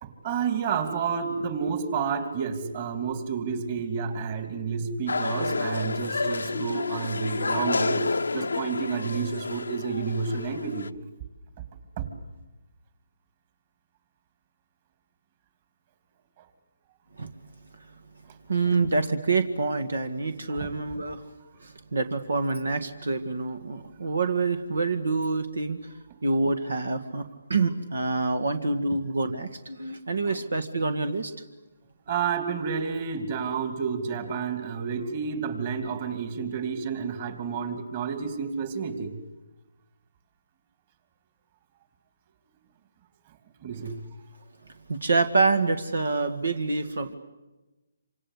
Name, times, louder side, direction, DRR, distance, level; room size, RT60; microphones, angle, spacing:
voice 1, 0.0-8.1 8.3-10.9 12.0-12.1 20.5-20.7 30.3-30.4 32.1-39.2 43.6-44.1, right 6 dB, 35° right, 8 dB, 3.0 m, -30 dB
sound 1, 5.1-10.9, left 3 dB, 85° left, 0.8 m, -30 dB
voice 2, 18.5-21.2 21.6-25.9 26.2-27.2 27.5-31.3 44.9-47.1, right 3 dB, 80° right, 10 dB, 1.9 m, -26 dB
27.0 x 26.5 x 8.3 m, 1.1 s
hypercardioid pair, 155°, 0 cm